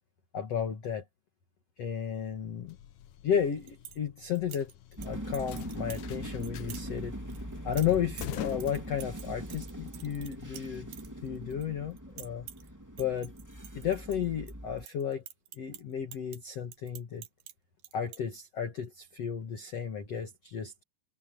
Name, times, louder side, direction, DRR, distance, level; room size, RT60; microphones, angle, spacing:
voice 1, 0.3-1.0 1.8-2.8 3.2-4.7 5.0-7.2 7.6-10.9 11.2-12.5 13.0-13.3 13.7-15.2 15.5-17.3 17.9-20.8, left 8 dB, 50° left, 2.0 m, -33 dB
sound 1, 2.2-9.5, left 12 dB, 75° left, 1.8 m, -45 dB
sound 2, 3.4-4.0 4.4-5.1 5.3-6.1 6.4-6.8 7.3-11.6 11.9-12.7 13.0-14.5 14.8-17.5 17.8-18.2, right 12 dB, 65° right, 2.6 m, -48 dB
sound 3, 5.0-14.8, equal, 10° right, 1.2 m, -41 dB
omnidirectional pair, 5.2 m